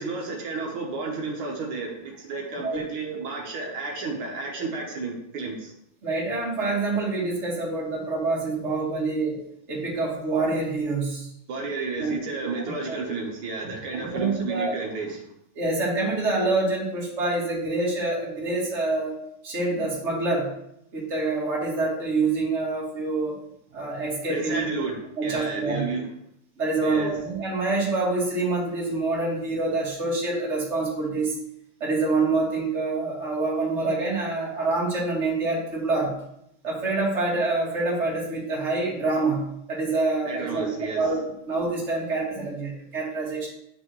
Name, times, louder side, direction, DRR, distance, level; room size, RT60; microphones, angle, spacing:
voice 1, 0.0-5.7 11.5-15.3 24.3-26.1 26.8-27.2 40.3-41.1, right 4 dB, 75° right, -1 dB, 1.9 m, -32 dB
voice 2, 6.0-9.4 9.7-11.3 12.0-12.1 12.9-13.0 13.9-14.8 15.6-19.1 19.4-20.5 20.9-23.4 23.7-24.7 25.2-25.8 26.6-31.3 31.8-36.1 36.6-39.4 39.7-43.5, right 3 dB, 35° right, -5 dB, 2.3 m, -26 dB
9.3 x 6.1 x 3.1 m, 0.76 s
omnidirectional pair, 2.3 m